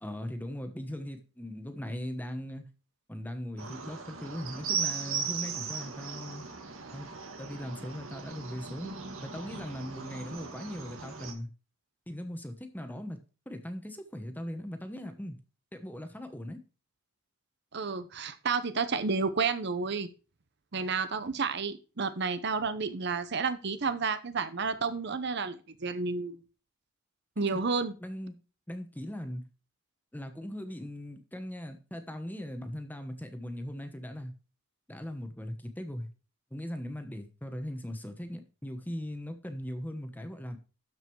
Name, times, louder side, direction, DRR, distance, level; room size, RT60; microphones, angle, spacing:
voice 1, 0.0-2.6 3.1-6.5 6.9-7.1 7.4-9.0 9.2-11.5 12.1-13.2 13.5-15.4 15.7-16.6 27.5-27.6 28.0-28.4 28.7-29.4 30.1-34.3 34.9-36.1 36.5-40.6, equal, 10° left, 1.1 m, -39 dB
sound 1, 3.6-11.3, right 5 dB, 75° right, 2.0 m, -38 dB
voice 2, 17.7-20.1 20.7-26.4 27.4-27.9, right 4 dB, 55° right, 0.8 m, -31 dB
12.5 x 5.2 x 4.6 m
head